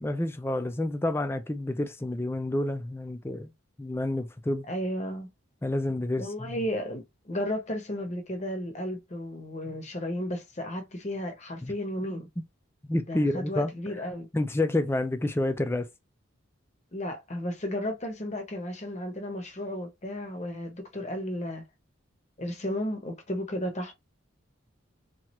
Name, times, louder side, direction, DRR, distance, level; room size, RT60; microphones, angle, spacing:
voice 1, 0.0-3.5 3.8-4.7 5.6-6.6 11.6-11.7 12.1-12.2 12.9-13.7 14.3-15.9, left 1 dB, 10° left, 0.3 m, -29 dB
voice 2, 4.7-5.3 6.2-12.3 13.1-14.3 16.9-21.6 22.4-23.9, left 1 dB, 35° left, 0.7 m, -33 dB
2.9 x 2.4 x 2.9 m
head